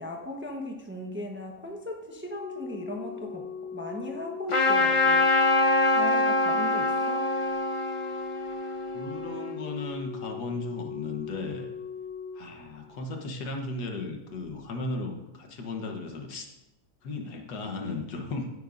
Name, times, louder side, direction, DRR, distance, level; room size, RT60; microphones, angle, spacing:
voice 1, 0.0-3.4 3.7-5.3 5.9-7.3, left 1 dB, 10° right, 1 dB, 0.8 m, -37 dB
Organ, 2.3-13.2 14.3-14.5, left 6 dB, 50° right, 3.0 m, -39 dB
Trumpet, 4.5-9.5, left 2 dB, 45° left, 0.4 m, -25 dB
voice 2, 8.9-11.7 12.3-16.5 17.0-18.5, left 2 dB, 75° left, 3 dB, 1.7 m, -35 dB
15.0 x 8.3 x 2.6 m, 1.0 s
omnidirectional pair, 1.8 m